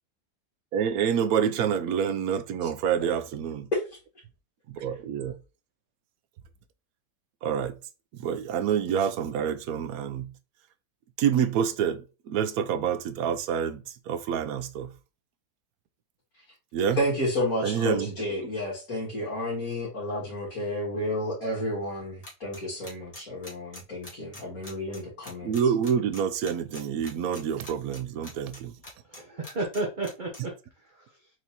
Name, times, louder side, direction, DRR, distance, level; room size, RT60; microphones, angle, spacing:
voice 1, 0.7-3.7 4.7-5.4 7.4-7.8 8.2-10.3 11.2-14.9 16.7-17.0 17.6-18.1 25.4-28.7, right 8 dB, 70° right, 1.0 m, -27 dB
voice 2, 17.0-25.5, left 1 dB, 60° left, 2.5 m, -31 dB
sound 1, 22.2-29.2 29.4-30.4, left 1 dB, 20° left, 1.6 m, -43 dB
voice 3, 29.0-31.3, right 2 dB, 35° right, 0.9 m, -34 dB
4.7 x 4.0 x 2.8 m
omnidirectional pair, 1.8 m